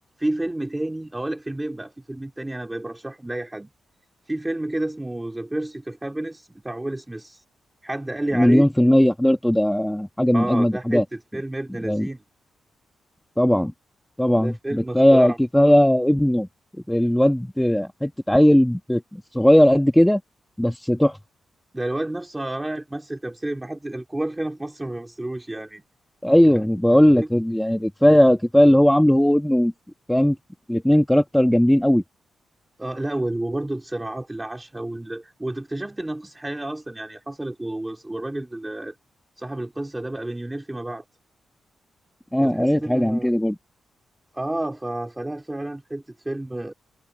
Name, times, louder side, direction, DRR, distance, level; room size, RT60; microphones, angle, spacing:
voice 1, 0.2-3.7 4.3-7.4 7.8-8.7 10.3-12.2 14.3-15.4 15.6-15.7 21.7-25.8 27.1-27.3 32.8-38.9 39.4-41.1 42.4-43.3 44.3-46.7, right 1 dB, 10° right, 3.8 m, -30 dB
voice 2, 8.3-11.0 11.8-12.1 13.4-13.7 14.2-16.5 16.9-20.2 20.6-21.2 26.2-29.7 30.1-30.4 30.7-32.0 42.3-43.6, equal, 5° left, 1.3 m, -18 dB
cardioid pair, 95°, 0 cm